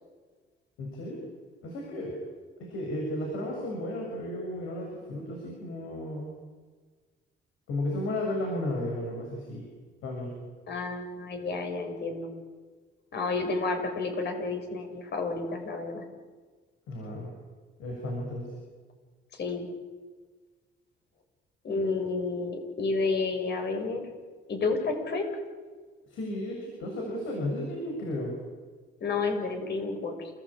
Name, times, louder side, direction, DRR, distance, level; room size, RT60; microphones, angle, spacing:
voice 1, 0.8-1.3 1.6-2.2 2.6-6.3 7.7-9.6 10.0-10.3 16.9-17.3 17.8-18.5 26.1-28.3, left 1 dB, 90° left, 0 dB, 7.2 m, -34 dB
voice 2, 10.7-12.3 13.1-16.0 19.4-19.7 21.6-24.0 24.5-25.3 29.0-30.3, left 3 dB, 60° left, 5 dB, 6.5 m, -30 dB
28.5 x 18.5 x 8.9 m, 1.4 s
cardioid pair, 90°, 20 cm